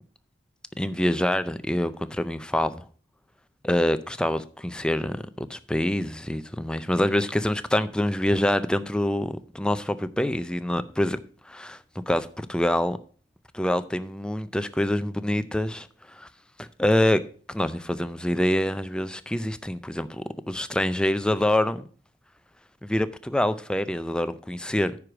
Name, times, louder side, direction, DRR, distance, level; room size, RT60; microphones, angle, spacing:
voice 1, 0.8-2.8 3.6-11.2 11.5-11.8 12.1-13.0 13.5-16.3 16.6-17.2 17.5-21.9 22.8-24.9, left 1 dB, 5° left, 0.4 m, -26 dB
9.7 x 4.8 x 6.0 m
head